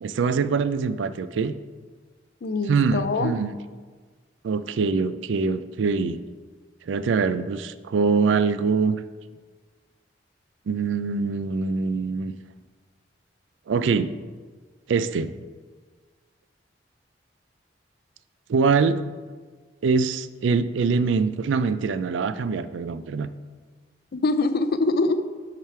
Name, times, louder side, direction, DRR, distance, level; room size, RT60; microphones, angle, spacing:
voice 1, 0.0-1.5 2.7-3.6 4.4-6.2 6.9-9.0 10.7-12.3 13.7-14.1 14.9-15.4 18.5-19.0 19.8-23.3, right 5 dB, 85° right, 13 dB, 0.4 m, -23 dB
voice 2, 2.4-3.3 24.1-25.2, left 3 dB, 55° left, 11 dB, 0.4 m, -23 dB
6.7 x 4.9 x 4.4 m, 1.5 s
head